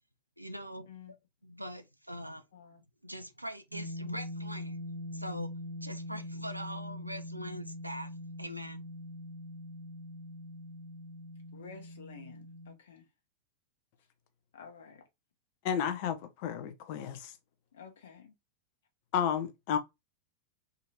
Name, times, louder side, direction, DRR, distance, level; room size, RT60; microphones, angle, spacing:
voice 1, 0.4-0.9 1.4-2.4 3.0-4.8 5.1-5.5 5.8-8.1 8.4-8.8, equal, 90° right, 0.5 m, -42 dB
voice 2, 2.5-2.8 11.5-13.1 14.5-15.0 17.7-18.3, left 6 dB, 65° left, 1.0 m, -51 dB
sound 1, 3.7-12.7, left 1 dB, 70° right, 1.2 m, -42 dB
voice 3, 15.6-17.3 19.1-19.8, left 8 dB, 45° left, 0.7 m, -32 dB
3.8 x 2.9 x 2.6 m
figure-of-eight pair, 90°, 0 cm